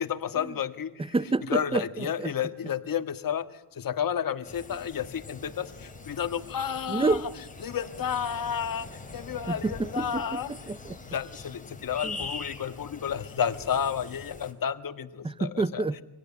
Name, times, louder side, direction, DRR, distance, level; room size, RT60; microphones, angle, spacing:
voice 1, 0.0-0.9 1.5-7.2 7.6-10.5 11.1-15.8, left 8 dB, 45° left, 9 dB, 1.7 m, -31 dB
voice 2, 1.1-2.3 6.9-7.2 9.5-11.0 12.0-12.2 15.2-16.0, right 3 dB, 10° right, 18 dB, 0.8 m, -29 dB
sound 1, 4.4-14.5, left 3 dB, 15° left, 3.5 m, -43 dB
25.5 x 17.5 x 9.9 m, 0.97 s
cardioid pair, 110°, 48 cm